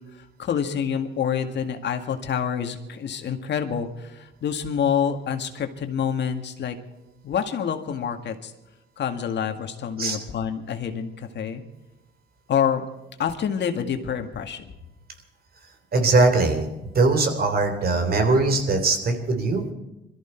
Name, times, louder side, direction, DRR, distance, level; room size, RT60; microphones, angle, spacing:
voice 1, 0.4-6.8 7.2-8.5 9.0-11.6 12.5-12.8 13.2-14.6, left 8 dB, 60° left, 6 dB, 1.8 m, -27 dB
voice 2, 15.9-16.7 17.0-19.7, right 3 dB, 50° right, 6 dB, 3.4 m, -21 dB
22.5 x 13.5 x 4.5 m, 0.97 s
cardioid pair, 90°, 20 cm